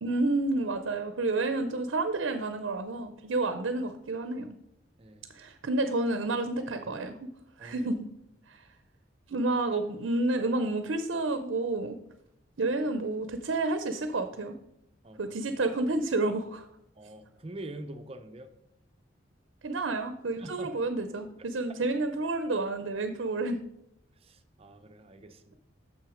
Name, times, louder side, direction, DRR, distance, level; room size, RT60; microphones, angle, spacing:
voice 1, 0.0-4.5 5.3-7.3 7.6-8.1 8.5-8.7 9.3-12.0 12.6-14.6 15.2-16.7 19.6-23.6, right 2 dB, 70° right, 9 dB, 0.6 m, -30 dB
voice 2, 5.0-5.3 7.6-7.9 15.0-15.5 16.9-18.5 20.4-20.7 21.7-21.9 24.2-25.5, right 1 dB, 30° right, 8 dB, 0.6 m, -45 dB
6.5 x 6.1 x 5.0 m, 0.80 s
head